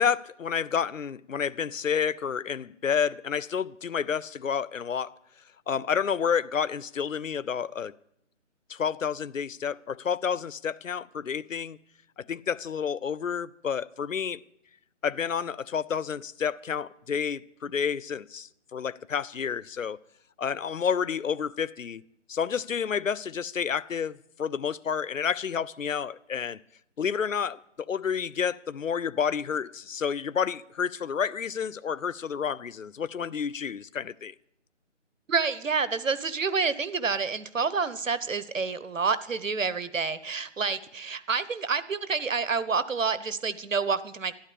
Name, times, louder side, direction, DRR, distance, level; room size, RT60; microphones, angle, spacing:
voice 1, 0.0-5.1 5.7-7.9 8.7-11.8 12.2-14.4 15.0-20.0 20.4-22.0 22.3-26.6 27.0-34.3, left 7 dB, 85° left, 0.7 m, -30 dB
voice 2, 35.3-44.3, right 5 dB, 85° right, 1.1 m, -28 dB
13.0 x 12.0 x 8.7 m
figure-of-eight pair, 165°, 38 cm